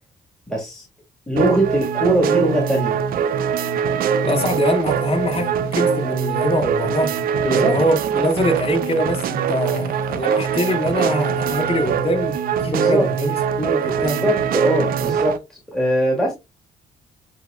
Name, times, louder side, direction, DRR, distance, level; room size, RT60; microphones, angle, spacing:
voice 1, 0.5-0.8 1.3-3.0 7.4-7.8 12.6-13.1 13.8-16.3, right 1 dB, 5° left, 1.7 m, -21 dB
sound 1, 1.4-15.4, right 7 dB, 80° right, 0.6 m, -22 dB
voice 2, 4.2-7.1 7.5-12.4 12.6-14.4, left 1 dB, 40° left, 2.1 m, -23 dB
7.8 x 2.9 x 2.4 m
cardioid pair, 95°, 15 cm